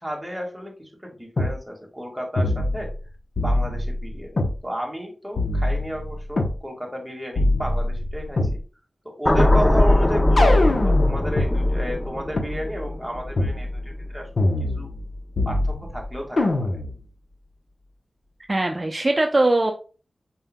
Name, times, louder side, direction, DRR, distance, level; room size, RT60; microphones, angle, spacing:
voice 1, 0.0-2.9 3.4-8.6 9.1-14.9 15.5-16.8, equal, 5° right, -1 dB, 1.8 m, -33 dB
sound 1, 1.4-1.6 2.4-3.0 3.4-4.6 5.4-6.6 7.4-8.6 9.4-11.5 12.4-12.5 13.4-13.6 14.4-15.1 15.4-16.0 16.4-17.0, left 2 dB, 75° left, 0.9 m, -23 dB
sound 2, 9.3-15.5 15.9-16.2, left 1 dB, 20° left, 0.6 m, -21 dB
voice 2, 18.5-19.7, right 2 dB, 35° right, 3 dB, 0.6 m, -20 dB
5.3 x 4.5 x 2.2 m, 0.36 s
wide cardioid pair, 60°, 0 cm